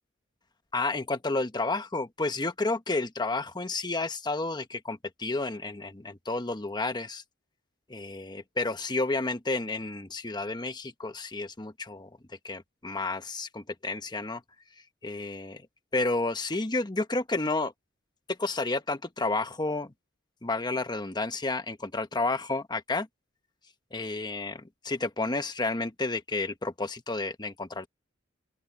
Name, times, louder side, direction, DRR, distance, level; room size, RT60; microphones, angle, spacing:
voice 1, 0.7-7.2 7.9-12.1 12.4-14.4 15.0-15.6 15.9-17.7 18.3-19.9 20.4-23.1 23.9-27.9, left 3 dB, 20° left, 1.1 m, -31 dB
open air
head